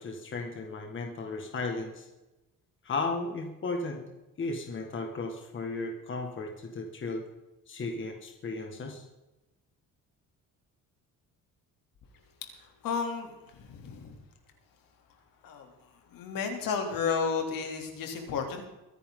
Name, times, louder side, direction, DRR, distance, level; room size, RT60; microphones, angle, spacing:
voice 1, 0.0-2.1 2.8-4.0 4.4-7.3 7.7-9.0, left 3 dB, 35° left, 3 dB, 1.8 m, -35 dB
voice 2, 12.6-14.2 15.4-15.7 16.1-18.7, left 5 dB, 75° left, 3 dB, 3.0 m, -33 dB
23.0 x 10.5 x 3.8 m, 0.99 s
cardioid pair, 145°, 34 cm